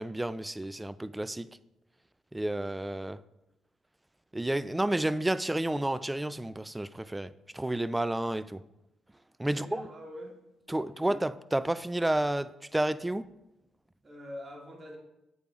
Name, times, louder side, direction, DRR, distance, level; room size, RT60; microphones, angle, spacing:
voice 1, 0.0-1.5 2.3-3.2 4.3-8.6 9.4-9.8 10.7-13.3, right 1 dB, 10° right, 0.3 m, -31 dB
voice 2, 9.5-10.4 10.7-11.0 14.0-15.0, left 1 dB, 35° right, 2.0 m, -45 dB
8.5 x 8.2 x 2.4 m
hypercardioid pair, 50°, 0 cm